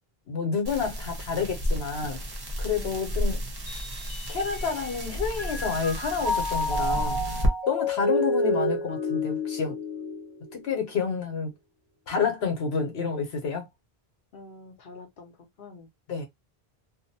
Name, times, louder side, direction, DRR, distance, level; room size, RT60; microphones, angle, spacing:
voice 1, 0.3-2.2 2.6-3.4 4.3-7.2 7.7-9.8 10.5-11.5 12.1-13.7 16.1-16.3, left 5 dB, 80° left, 1.1 m, -29 dB
sound 1, 0.7-7.5, equal, 30° right, 0.5 m, -31 dB
voice 2, 2.7-3.4 14.3-15.9, left 3 dB, 60° left, 0.8 m, -47 dB
Mallet percussion, 3.7-5.0 5.4-10.8, left 2 dB, 35° left, 0.5 m, -30 dB
2.6 x 2.0 x 2.6 m
omnidirectional pair, 1.1 m